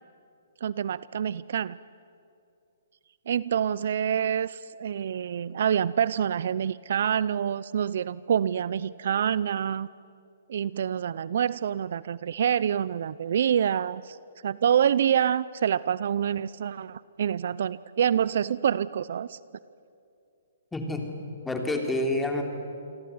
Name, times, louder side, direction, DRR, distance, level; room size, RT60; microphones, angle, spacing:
voice 1, 0.6-1.8 3.3-9.9 10.5-14.2 14.4-19.4, right 8 dB, 60° right, 19 dB, 0.6 m, -26 dB
voice 2, 20.7-22.4, left 2 dB, 5° left, 3 dB, 3.1 m, -29 dB
28.0 x 22.5 x 9.5 m, 2.6 s
hypercardioid pair, 155°, 0 cm